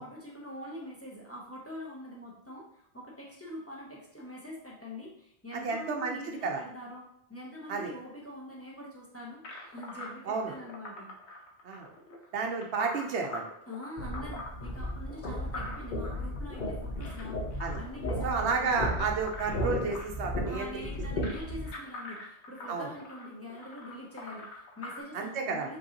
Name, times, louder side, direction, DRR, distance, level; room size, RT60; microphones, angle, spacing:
voice 1, 0.0-11.1 13.7-18.9 20.4-25.8, left 1 dB, 15° left, -4 dB, 0.8 m, -44 dB
voice 2, 5.5-6.6 7.7-7.9 10.3-10.5 11.6-11.9 12.3-13.5 17.6-17.8 18.2-20.7 22.7-22.9 25.1-25.7, right 5 dB, 90° right, 3 dB, 1.0 m, -31 dB
sound 1, 9.4-25.0, left 2 dB, 90° left, 1.2 m, -44 dB
sound 2, 14.0-21.7, left 1 dB, 50° left, 0.8 m, -35 dB
5.3 x 3.2 x 2.8 m, 0.75 s
omnidirectional pair, 1.1 m